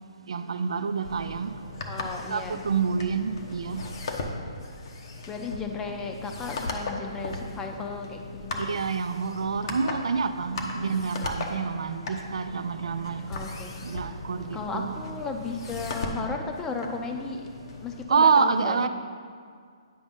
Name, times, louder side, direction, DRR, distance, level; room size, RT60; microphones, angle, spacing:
voice 1, 0.3-1.5 2.3-3.9 8.6-13.2 13.8-15.0 18.1-18.9, right 5 dB, 75° right, 0.4 m, -27 dB
sound 1, 1.0-18.0, left 2 dB, 55° left, 1.0 m, -37 dB
voice 2, 1.9-2.6 5.3-8.9 10.8-11.1 13.3-13.7 14.5-17.5 17.8-18.9, left 4 dB, 15° left, 0.7 m, -35 dB
9.3 x 5.1 x 3.6 m
hypercardioid pair, 145°, 3 cm